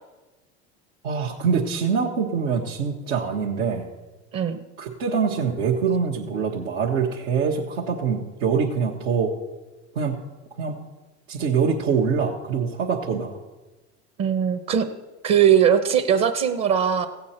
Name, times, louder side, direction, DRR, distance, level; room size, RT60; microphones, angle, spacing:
voice 1, 1.0-3.9 4.8-9.3 9.9-10.2 10.6-10.8 11.3-13.4, right 6 dB, 85° right, -5 dB, 1.4 m, -24 dB
voice 2, 14.2-14.9 15.2-17.1, right 8 dB, 45° right, 7 dB, 1.0 m, -20 dB
15.5 x 8.5 x 4.3 m, 1.1 s
hypercardioid pair, 85°, 36 cm